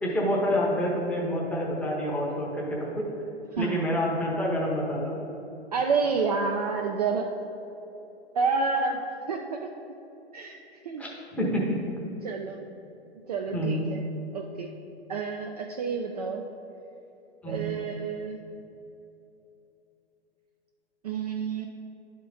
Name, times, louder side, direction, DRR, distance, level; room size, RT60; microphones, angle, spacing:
voice 1, 0.0-3.1 3.6-5.2 11.0-11.8 13.5-13.8 17.4-17.7, equal, 5° left, -4 dB, 0.8 m, -28 dB
voice 2, 3.5-3.8 5.7-7.3 8.3-9.7 10.3-10.6 10.8-11.0 12.2-12.6 13.3-14.0 14.3-14.7 15.1-16.4 17.5-18.4 21.0-21.7, right 4 dB, 40° right, 2 dB, 0.4 m, -29 dB
10.5 x 3.6 x 3.9 m, 2.9 s
figure-of-eight pair, 110°, 33 cm